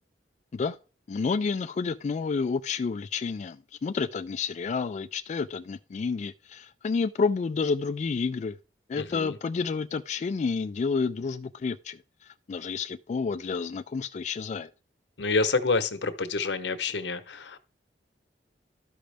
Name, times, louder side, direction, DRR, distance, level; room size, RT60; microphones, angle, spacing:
voice 1, 1.1-8.6 8.9-14.7, left 5 dB, 40° left, 0.3 m, -30 dB
voice 2, 8.9-9.4 15.2-17.6, left 3 dB, 85° left, 0.9 m, -28 dB
12.5 x 5.1 x 3.4 m
head